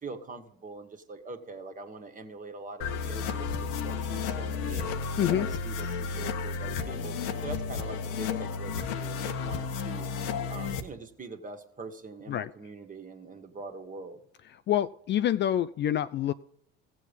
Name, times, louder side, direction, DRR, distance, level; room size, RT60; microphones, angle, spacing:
voice 1, 0.0-10.1 10.5-14.2, right 3 dB, 25° right, 6 dB, 1.8 m, -43 dB
sound 1, 2.8-10.8, left 5 dB, 70° left, 1.3 m, -32 dB
voice 2, 5.2-5.5 12.3-12.5 14.7-16.3, left 11 dB, 40° left, 14 dB, 0.4 m, -27 dB
15.5 x 7.4 x 5.4 m, 0.70 s
hypercardioid pair, 75°, 30 cm